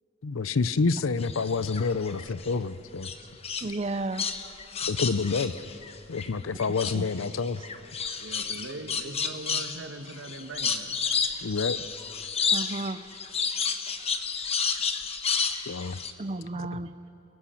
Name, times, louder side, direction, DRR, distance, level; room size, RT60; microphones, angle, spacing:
voice 1, 0.2-3.1 4.9-5.6 6.1-7.6 11.4-11.8 15.7-16.0, left 4 dB, 85° left, 16 dB, 0.6 m, -28 dB
sound 1, 1.2-2.5 3.0-6.3 6.6-16.1, left 6 dB, 30° left, 1.0 m, -31 dB
voice 2, 3.6-4.3 6.9-7.1 12.5-13.1 16.2-16.9, right 2 dB, 30° right, 12 dB, 0.6 m, -33 dB
voice 3, 7.9-10.9 16.8-17.1, right 2 dB, 75° right, 6 dB, 1.5 m, -41 dB
28.5 x 21.5 x 5.8 m, 2.9 s
head